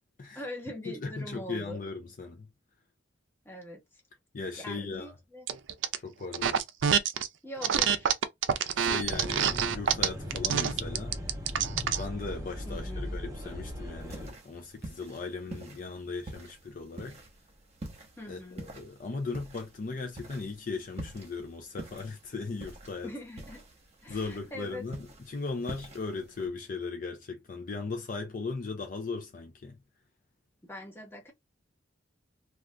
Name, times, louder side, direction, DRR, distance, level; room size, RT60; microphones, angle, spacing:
voice 1, 0.3-1.8 3.4-3.8 4.6-5.5 7.4-8.1 12.7-13.2 18.2-18.7 23.0-23.6 24.0-24.8 30.6-31.3, left 1 dB, 15° left, 1.0 m, -42 dB
voice 2, 0.9-2.5 4.3-5.1 6.0-6.6 8.8-11.2 12.0-17.2 18.3-23.1 24.1-29.8, left 4 dB, 45° left, 0.5 m, -38 dB
sound 1, 5.5-6.0 6.3-7.3 7.6-12.0, right 8 dB, 80° right, 0.4 m, -26 dB
sound 2, 9.1-14.3, left 1 dB, 20° right, 0.9 m, -38 dB
sound 3, 14.0-26.5, right 1 dB, 35° right, 1.0 m, -47 dB
2.5 x 2.4 x 3.2 m
head